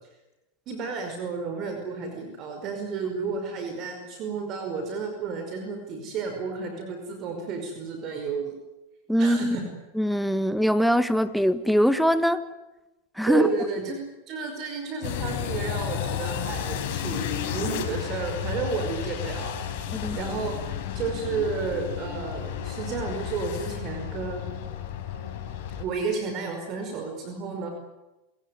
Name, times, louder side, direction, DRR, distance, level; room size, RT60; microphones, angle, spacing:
voice 1, 0.7-8.5 9.2-9.6 13.3-14.0 14.3-24.7 25.8-27.7, right 5 dB, 45° right, 5 dB, 5.2 m, -32 dB
voice 2, 9.1-9.6 10.0-12.4 13.2-13.5 19.9-20.2, equal, ahead, 11 dB, 1.5 m, -22 dB
sound 1, 15.0-25.8, left 9 dB, 60° left, 4.8 m, -32 dB
27.5 x 16.5 x 9.7 m, 1.0 s
hypercardioid pair, 115°, 0 cm